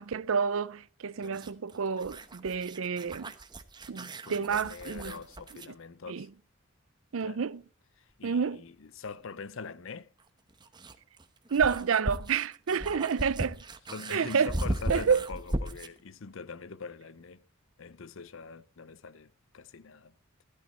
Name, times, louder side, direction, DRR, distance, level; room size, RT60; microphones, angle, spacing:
voice 1, 0.0-3.3 3.9-5.1 6.1-6.3 7.1-7.6 8.2-8.6 11.5-13.6 14.1-14.5 14.9-15.2, right 6 dB, 65° right, 0.5 m, -29 dB
sound 1, 1.2-5.8 8.1-8.2 10.2-16.0, right 1 dB, 20° right, 1.0 m, -37 dB
voice 2, 4.2-6.3 7.2-7.5 8.0-10.1 12.9-13.3 13.9-17.4 17.8-20.1, left 4 dB, 65° left, 0.6 m, -43 dB
13.5 x 12.0 x 4.2 m
head